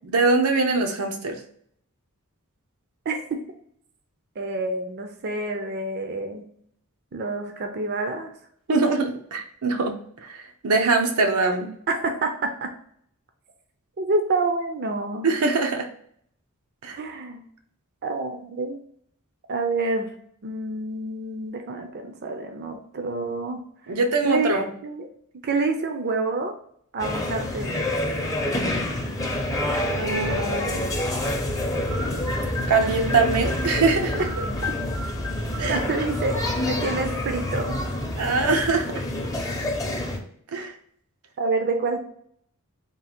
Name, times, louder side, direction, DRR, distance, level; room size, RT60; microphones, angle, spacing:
voice 1, 0.0-1.4 8.7-10.0 10.2-11.7 15.2-15.9 16.8-17.0 23.9-24.7 30.0-30.9 32.7-34.2 35.6-35.8 38.2-39.0 40.5-40.8, right 3 dB, 85° right, 4 dB, 0.7 m, -23 dB
voice 2, 3.1-3.4 4.4-6.4 7.1-8.3 11.9-12.7 14.0-15.3 17.0-17.4 18.0-18.8 19.5-20.1 20.4-23.6 24.2-24.5 24.8-25.1 25.4-26.5 26.9-27.8 35.6-36.4 36.6-37.8 41.4-42.0, right 3 dB, 50° right, 5 dB, 0.5 m, -27 dB
sound 1, 27.0-40.2, left 1 dB, 15° left, 0.6 m, -27 dB
3.7 x 2.4 x 4.3 m, 0.64 s
head